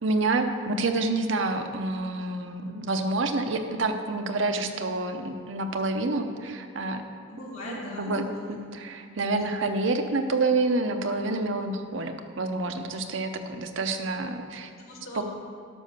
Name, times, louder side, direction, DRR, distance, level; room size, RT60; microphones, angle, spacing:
voice 1, 0.0-7.0 7.7-8.2 8.7-14.7 15.1-15.3, right 2 dB, 65° right, 6 dB, 0.8 m, -28 dB
voice 2, 7.3-8.5 14.8-15.3, left 1 dB, 75° left, -5 dB, 2.7 m, -39 dB
11.5 x 5.5 x 6.7 m, 2.2 s
head